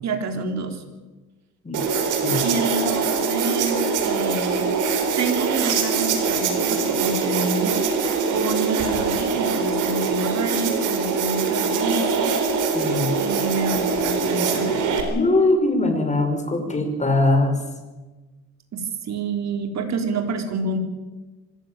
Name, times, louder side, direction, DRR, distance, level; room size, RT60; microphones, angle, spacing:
voice 1, 0.0-0.8 2.4-4.7 5.2-8.0 8.3-12.3 13.2-14.9 18.7-20.8, right 3 dB, 60° right, 5 dB, 3.8 m, -28 dB
sound 1, 1.7-15.0, right 5 dB, 85° right, 4.2 m, -23 dB
voice 2, 12.7-13.1 15.1-17.6, left 2 dB, 25° left, 4 dB, 5.6 m, -21 dB
25.5 x 15.0 x 9.2 m, 1.2 s
cardioid pair, 90°, 30 cm